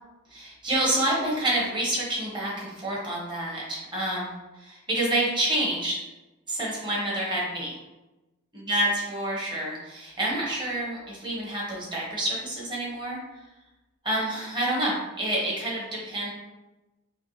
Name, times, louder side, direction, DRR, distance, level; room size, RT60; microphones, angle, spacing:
voice 1, 0.3-4.3 4.9-6.0 6.5-7.8 8.7-13.2 14.0-16.3, right 1 dB, 20° right, -5 dB, 1.2 m, -28 dB
5.6 x 2.2 x 3.2 m, 1.0 s
head